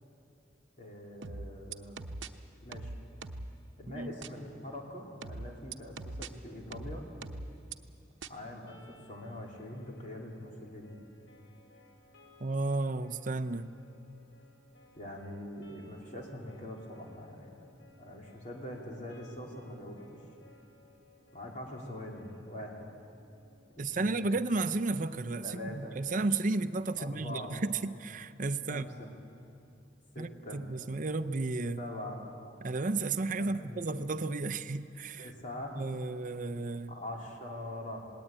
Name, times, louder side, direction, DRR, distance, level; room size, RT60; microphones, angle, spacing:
voice 1, 0.8-2.0 2.6-2.9 3.8-7.0 8.3-8.8 9.1-11.0 15.0-17.7 18.0-20.2 21.3-22.9 23.7-24.4 25.4-26.0 27.0-27.5 28.7-29.1 30.1-30.6 31.8-32.2 33.4-33.8 35.2-35.8 36.9-38.0, left 1 dB, 40° left, -1 dB, 3.2 m, -43 dB
sound 1, 1.2-2.3 2.7-3.5 4.2-4.3 5.2-6.3 6.7-7.7 8.2-8.3, right 3 dB, 80° right, 0.8 m, -41 dB
sound 2, 8.7-24.7, left 2 dB, 80° left, 2.9 m, -61 dB
voice 2, 12.4-13.7 23.8-28.9 30.2-31.8 32.6-35.3 35.8-37.0, right 3 dB, 45° right, 11 dB, 0.6 m, -33 dB
19.0 x 18.5 x 8.9 m, 2.5 s
head